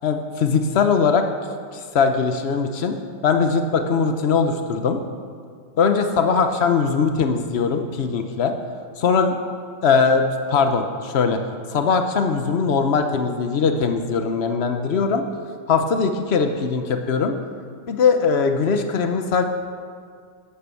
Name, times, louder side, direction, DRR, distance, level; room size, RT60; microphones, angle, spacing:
voice 1, 0.0-1.2 1.7-3.0 3.2-5.0 5.8-8.5 9.0-9.4 9.8-10.2 10.5-11.4 11.7-15.2 15.7-17.4 17.9-19.4, left 5 dB, 80° left, 6 dB, 0.5 m, -20 dB
11.5 x 11.5 x 7.0 m, 2.1 s
omnidirectional pair, 2.3 m